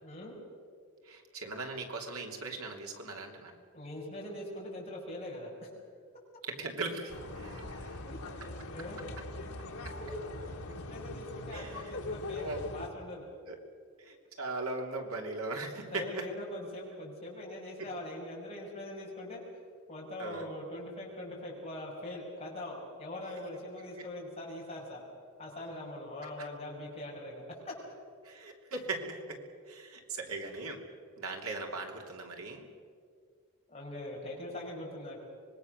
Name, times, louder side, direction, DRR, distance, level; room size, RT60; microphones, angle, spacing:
voice 1, 0.0-0.4 3.7-5.7 8.1-8.2 8.7-9.0 10.0-10.1 10.6-13.3 15.9-19.4 19.9-25.0 25.4-27.4 33.7-35.2, left 1 dB, 30° left, -3 dB, 5.9 m, -42 dB
voice 2, 1.0-3.5 6.5-8.0 11.5-12.0 12.4-12.6 13.5-13.6 14.0-16.2 20.2-20.4 28.2-29.4 29.7-30.8 31.2-32.7, right 3 dB, 80° right, 2 dB, 3.0 m, -39 dB
sound 1, 7.1-12.9, left 2 dB, 85° left, 1.9 m, -41 dB
25.5 x 21.0 x 6.6 m, 2.1 s
head